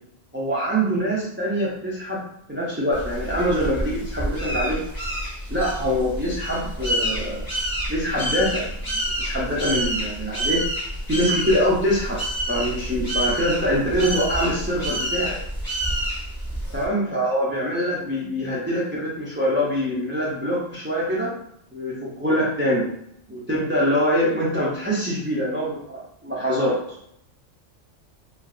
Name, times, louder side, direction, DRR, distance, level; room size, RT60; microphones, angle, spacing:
voice 1, 0.3-2.2 2.5-4.8 5.5-7.4 7.9-10.6 11.1-12.2 12.5-15.4 16.7-21.3 21.7-22.9 23.3-26.8, equal, 20° right, -6 dB, 0.3 m, -24 dB
sound 1, 2.9-16.9, right 1 dB, 25° left, 0.6 m, -28 dB
3.2 x 2.4 x 2.4 m, 0.73 s
omnidirectional pair, 1.3 m